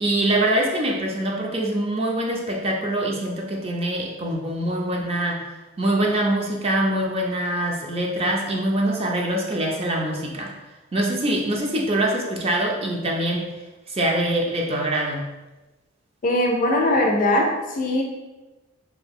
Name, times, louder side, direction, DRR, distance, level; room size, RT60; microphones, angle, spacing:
voice 1, 0.0-5.4 5.8-10.5 10.9-13.5 13.9-15.2, right 1 dB, 30° right, -1 dB, 0.5 m, -24 dB
voice 2, 16.2-18.0, left 1 dB, 45° left, 1 dB, 0.5 m, -20 dB
2.8 x 2.3 x 3.6 m, 1.1 s
head